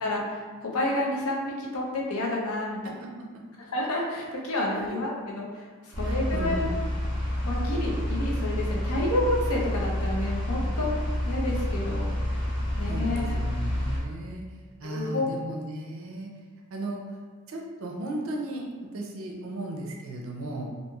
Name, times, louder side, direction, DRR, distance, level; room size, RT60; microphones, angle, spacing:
voice 1, 0.0-2.8 3.7-6.7 7.4-10.9 11.2-12.1 12.8-13.3 14.8-15.3, left 1 dB, 80° left, -3 dB, 0.6 m, -29 dB
voice 2, 2.8-3.3 4.7-5.0 6.0-6.7 12.9-14.4 14.8-16.3 16.7-17.2 17.5-20.7, right 1 dB, 65° right, 0 dB, 0.5 m, -36 dB
sound 1, 5.9-14.0, left 1 dB, 20° left, 0.9 m, -29 dB
3.0 x 2.7 x 2.3 m, 1.5 s
head